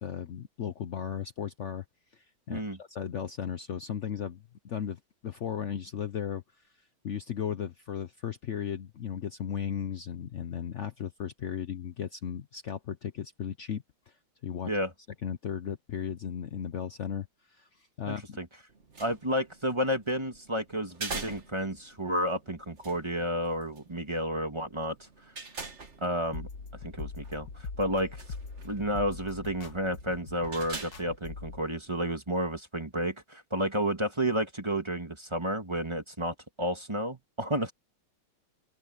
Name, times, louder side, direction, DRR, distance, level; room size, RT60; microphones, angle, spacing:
voice 1, 0.0-1.8 2.1-6.7 7.0-14.2 14.4-14.7 15.2-18.4, left 8 dB, 75° left, 0.6 m, -36 dB
voice 2, 18.1-18.5 19.0-25.0 26.0-26.5 26.8-27.5 27.8-28.2 28.6-37.7, equal, 15° right, 1.8 m, -31 dB
sound 1, 18.7-32.2, right 4 dB, 35° right, 2.2 m, -46 dB
sound 2, 26.3-31.6, left 4 dB, 50° left, 1.9 m, -42 dB
open air
omnidirectional pair, 2.3 m